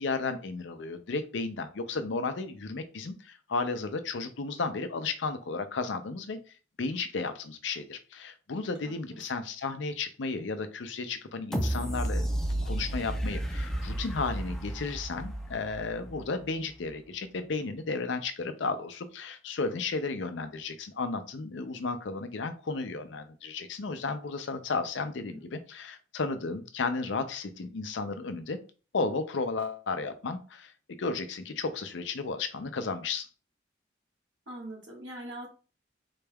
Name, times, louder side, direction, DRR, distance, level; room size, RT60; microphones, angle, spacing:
voice 1, 0.0-6.4 6.8-12.3 12.6-28.6 28.9-30.7 31.0-33.3, left 4 dB, 85° left, 9 dB, 0.5 m, -33 dB
sound 1, 11.5-16.4 16.9-17.0, right 1 dB, 5° left, 0.4 m, -32 dB
voice 2, 25.2-25.6 34.5-35.5, right 1 dB, 90° right, -1 dB, 1.5 m, -42 dB
3.9 x 2.3 x 3.3 m, 0.36 s
head